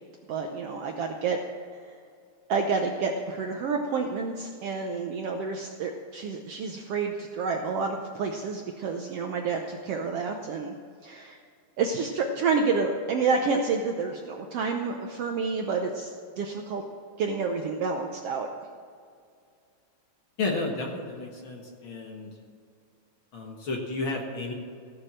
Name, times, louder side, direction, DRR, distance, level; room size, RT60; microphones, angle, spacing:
voice 1, 0.3-1.4 1.7-1.8 2.5-10.7 11.0-11.4 11.8-16.8 17.2-18.5, right 4 dB, 70° right, 3 dB, 1.5 m, -29 dB
voice 2, 20.4-22.3 23.3-24.5, left 3 dB, 50° left, 0 dB, 1.8 m, -32 dB
16.0 x 6.7 x 7.4 m, 2.3 s
omnidirectional pair, 3.5 m